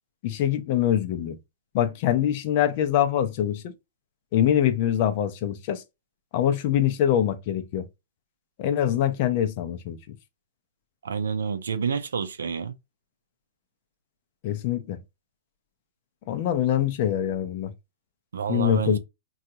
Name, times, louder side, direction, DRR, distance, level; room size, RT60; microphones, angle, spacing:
voice 1, 0.2-1.4 1.7-3.7 4.3-5.8 6.3-7.9 8.6-10.2 14.4-15.0 16.3-17.7 18.5-19.0, left 10 dB, 45° left, 0.5 m, -24 dB
voice 2, 11.0-12.8 18.3-19.0, right 6 dB, 85° right, 0.5 m, -28 dB
3.7 x 2.3 x 2.8 m
hypercardioid pair, 130°, 0 cm